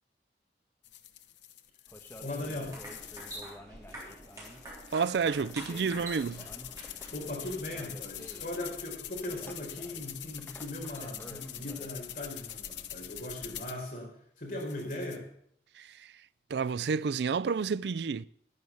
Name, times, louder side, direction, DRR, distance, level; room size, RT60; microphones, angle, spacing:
sound 1, 0.8-3.5 3.9-13.8 14.5-15.2, left 11 dB, 90° left, 0.8 m, -45 dB
sound 2, 1.9-13.6, equal, 10° left, 1.4 m, -52 dB
voice 1, 2.2-2.8 7.1-15.3, left 1 dB, 50° left, 4.5 m, -39 dB
sound 3, 2.5-7.8, right 1 dB, 20° right, 3.5 m, -46 dB
voice 2, 4.9-6.5 15.8-16.1 16.5-18.2, right 5 dB, 70° right, 0.4 m, -30 dB
11.0 x 9.4 x 7.0 m
head